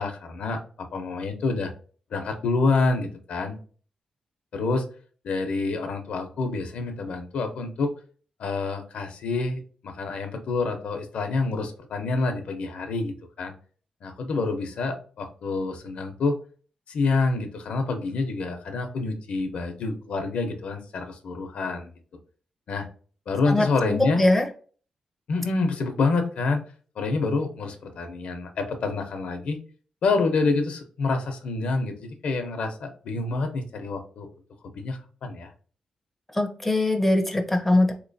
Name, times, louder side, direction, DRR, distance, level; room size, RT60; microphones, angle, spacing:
voice 1, 0.0-1.7 2.1-3.6 4.5-4.8 5.2-7.9 8.4-13.5 14.0-16.4 16.9-21.9 22.7-22.9 23.3-24.3 25.3-26.6 27.0-29.6 30.0-34.3 34.6-35.5, left 3 dB, 75° left, 6 dB, 0.7 m, -27 dB
voice 2, 23.5-24.5 36.3-37.9, left 2 dB, 5° left, 3 dB, 0.4 m, -22 dB
3.8 x 3.0 x 2.6 m, 0.41 s
wide cardioid pair, 160°, 2 cm